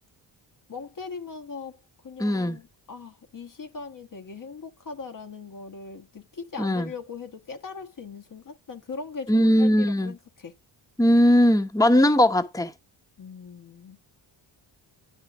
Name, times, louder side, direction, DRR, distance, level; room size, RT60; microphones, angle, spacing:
voice 1, 0.7-1.8 2.0-10.5 13.2-14.0, left 5 dB, 40° left, 1.1 m, -40 dB
voice 2, 2.2-2.6 6.6-6.9 9.3-10.1 11.0-12.7, equal, 5° left, 1.1 m, -19 dB
9.6 x 4.5 x 6.0 m
cardioid pair, 70°, 48 cm